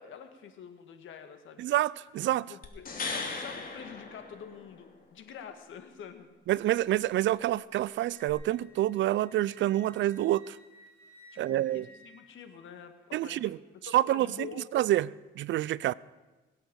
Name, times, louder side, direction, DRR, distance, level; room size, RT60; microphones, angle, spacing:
voice 1, 0.0-1.7 2.5-6.3 11.3-13.5 14.1-14.6, left 7 dB, 75° left, 1.9 m, -47 dB
voice 2, 1.6-2.5 6.5-10.6 11.4-11.9 13.1-13.6 13.9-15.1 15.4-15.9, right 14 dB, 70° right, 0.5 m, -27 dB
sound 1, 2.6-4.9 8.3-8.4, left 4 dB, 45° left, 2.8 m, -38 dB
Wind instrument woodwind instrument, 8.1-12.7, right 1 dB, 10° left, 3.7 m, -57 dB
21.5 x 8.3 x 7.0 m
cardioid pair, 90°, 20 cm